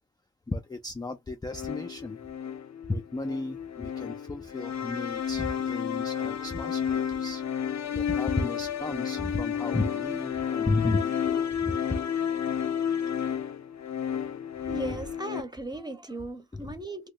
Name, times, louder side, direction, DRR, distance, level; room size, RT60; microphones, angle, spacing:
voice 1, 0.5-2.2 2.9-12.0 16.5-16.6, left 2 dB, 10° left, 0.3 m, -33 dB
sound 1, 1.5-15.4, left 8 dB, 45° left, 0.6 m, -31 dB
voice 2, 14.6-17.1, right 2 dB, 10° right, 0.7 m, -37 dB
2.9 x 2.1 x 3.7 m
wide cardioid pair, 110°, 40 cm